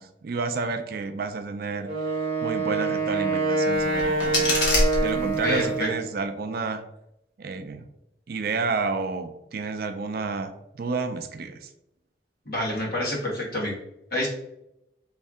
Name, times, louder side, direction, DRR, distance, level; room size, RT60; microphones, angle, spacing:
voice 1, 0.0-1.9 2.4-4.6 5.0-6.8 7.4-7.9 8.3-10.5 10.8-11.7, right 4 dB, 50° right, 8 dB, 0.4 m, -30 dB
Wind instrument woodwind instrument, 1.8-6.1, right 3 dB, 30° right, 0.9 m, -26 dB
sound 1, 3.7-5.7, left 1 dB, 80° left, 1.2 m, -26 dB
voice 2, 5.4-5.9 12.4-13.7 14.1-14.3, left 1 dB, 55° left, -3 dB, 1.3 m, -27 dB
3.2 x 2.7 x 3.5 m, 0.84 s
head